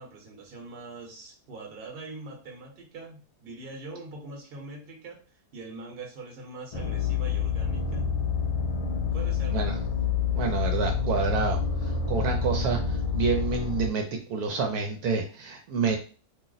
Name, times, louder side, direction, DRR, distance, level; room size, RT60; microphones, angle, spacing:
voice 1, 0.0-8.1 9.1-9.6 11.7-11.8, right 3 dB, 45° right, 0 dB, 0.9 m, -43 dB
sound 1, 6.7-13.9, left 6 dB, 75° left, 1.0 m, -28 dB
voice 2, 10.3-14.0 14.3-16.0, right 5 dB, 75° right, 3 dB, 1.0 m, -28 dB
2.7 x 2.0 x 3.8 m, 0.37 s
omnidirectional pair, 1.6 m